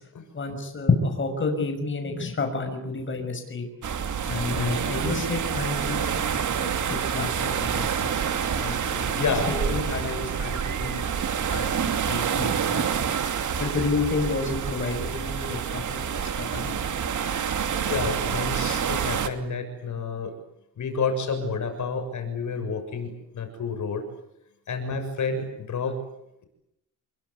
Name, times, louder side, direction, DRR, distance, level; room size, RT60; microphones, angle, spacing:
voice 1, 0.3-3.7 4.2-8.1 8.5-11.1 11.5-13.1 13.6-16.0 16.4-16.7, left 3 dB, 35° left, 4 dB, 6.1 m, -30 dB
sound 1, 3.8-19.3, right 7 dB, 55° right, 2.7 m, -27 dB
voice 2, 9.2-9.5 17.9-20.3 20.8-24.0 24.7-26.0, left 4 dB, 55° left, 7 dB, 6.9 m, -29 dB
28.0 x 23.5 x 8.4 m, 0.81 s
wide cardioid pair, 150°, 35 cm